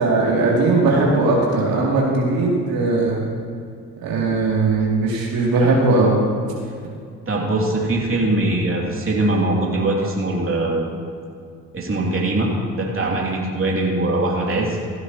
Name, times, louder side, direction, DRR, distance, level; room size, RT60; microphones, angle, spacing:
voice 1, 0.0-3.2 4.0-6.2, right 3 dB, 60° right, -4 dB, 2.9 m, -18 dB
voice 2, 7.3-10.9 11.7-14.9, right 2 dB, 30° right, -3 dB, 2.8 m, -21 dB
16.0 x 12.5 x 3.0 m, 2.3 s
hypercardioid pair, 55°, 40 cm